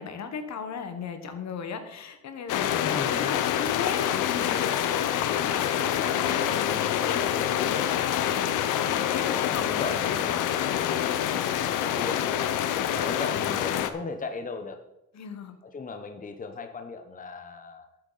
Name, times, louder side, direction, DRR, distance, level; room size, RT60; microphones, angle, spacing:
voice 1, 0.0-11.6 12.7-13.1 15.1-15.6, left 6 dB, 65° left, 8 dB, 1.5 m, -37 dB
sound 1, 2.5-13.9, left 10 dB, 90° left, 0.8 m, -26 dB
voice 2, 2.8-3.4 7.2-7.7 9.3-10.5 11.8-12.6 12.8-14.8 15.6-17.9, left 4 dB, 25° left, 6 dB, 1.0 m, -37 dB
12.5 x 8.0 x 4.1 m, 0.92 s
cardioid pair, 90°, 30 cm